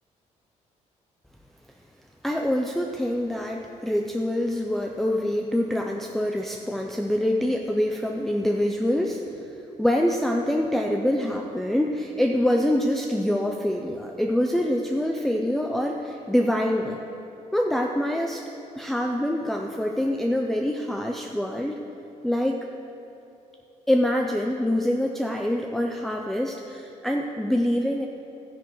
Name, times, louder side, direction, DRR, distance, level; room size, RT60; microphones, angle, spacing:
voice 1, 2.2-9.4 9.8-17.0 17.5-18.4 18.7-21.8 22.2-22.7 23.9-28.1, left 1 dB, ahead, 1 dB, 0.4 m, -25 dB
13.5 x 10.0 x 3.0 m, 2.8 s
cardioid pair, 140°, 13 cm